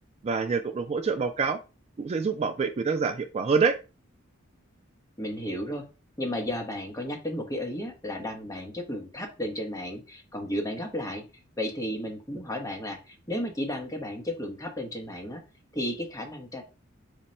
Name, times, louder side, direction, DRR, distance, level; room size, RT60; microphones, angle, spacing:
voice 1, 0.2-1.6 2.0-3.8, right 5 dB, 30° right, 6 dB, 0.3 m, -26 dB
voice 2, 5.2-5.8 6.2-11.3 11.6-15.4 15.7-16.6, left 1 dB, 15° left, 3 dB, 0.9 m, -33 dB
5.1 x 2.2 x 4.2 m, 0.30 s
head